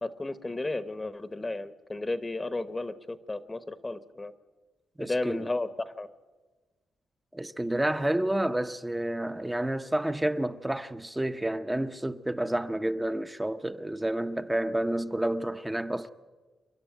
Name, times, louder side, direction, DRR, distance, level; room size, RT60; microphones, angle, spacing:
voice 1, 0.0-4.3 5.0-6.1, left 2 dB, 20° left, 1.0 m, -33 dB
voice 2, 5.0-5.5 7.3-16.1, right 1 dB, 10° right, 0.8 m, -30 dB
28.0 x 11.0 x 9.1 m
cardioid pair, 85°, 0 cm